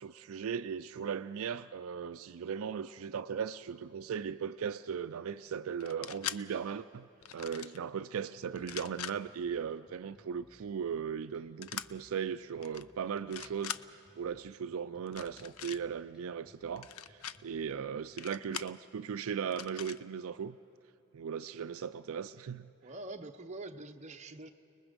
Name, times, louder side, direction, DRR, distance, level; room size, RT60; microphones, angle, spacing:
voice 1, 0.0-20.6 21.1-22.7, right 7 dB, 75° right, 0.4 m, -38 dB
sound 1, 5.8-6.4 7.2-7.8 8.5-9.1 11.6-11.9 12.6-12.8 13.2-13.8 15.1-15.8 16.8-17.4 18.2-18.7 19.5-20.0, left 10 dB, 85° left, 0.5 m, -41 dB
sound 2, 8.9-18.1, equal, 5° right, 2.5 m, -63 dB
voice 2, 17.5-17.9 22.8-24.5, right 2 dB, 30° right, 0.8 m, -45 dB
29.5 x 20.5 x 5.1 m
head